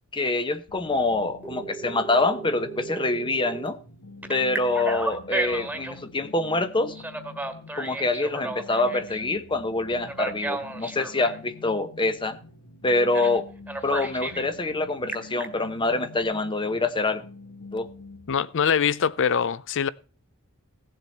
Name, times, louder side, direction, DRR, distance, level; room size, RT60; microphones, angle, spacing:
voice 1, 0.1-3.8 4.3-7.0 7.8-12.4 12.8-13.5 13.8-17.2 17.7-17.9, left 2 dB, 20° left, 0.9 m, -25 dB
sound 1, 0.7-18.3, left 3 dB, 75° left, 1.4 m, -46 dB
Telephone, 1.4-3.7 4.2-6.0 6.9-9.2 10.0-11.4 13.1-13.4 13.7-14.5 14.9-15.4, right 2 dB, 5° right, 1.6 m, -33 dB
voice 2, 18.3-19.9, left 7 dB, 60° left, 0.6 m, -23 dB
16.5 x 7.5 x 4.2 m
head